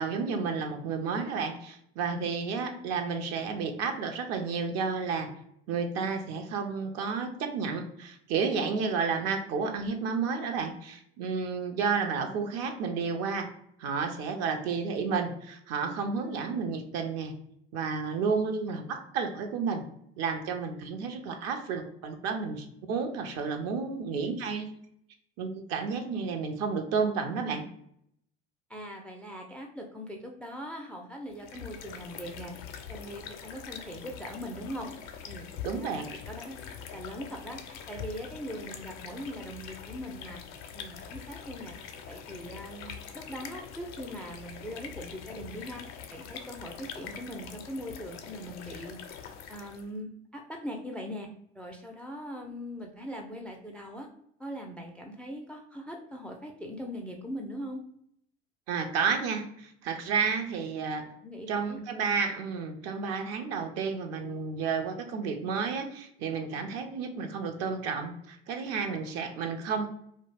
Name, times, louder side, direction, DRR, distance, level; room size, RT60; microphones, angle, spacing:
voice 1, 0.0-5.3 5.7-13.5 13.8-17.3 17.7-19.8 20.2-24.7 25.4-27.7 35.6-36.1 58.7-61.0 61.5-69.9, right 5 dB, 55° right, 5 dB, 0.6 m, -31 dB
voice 2, 28.7-32.5 32.9-34.9 35.3-35.5 35.8-36.6 36.9-40.4 40.7-41.7 42.1-45.8 46.1-49.0 49.5-51.3 51.5-54.1 54.4-57.8 61.2-61.8, equal, 5° left, 2 dB, 0.3 m, -41 dB
sound 1, 31.3-49.9, left 7 dB, 60° left, 0.5 m, -44 dB
2.3 x 2.1 x 3.2 m, 0.70 s
hypercardioid pair, 75°, 29 cm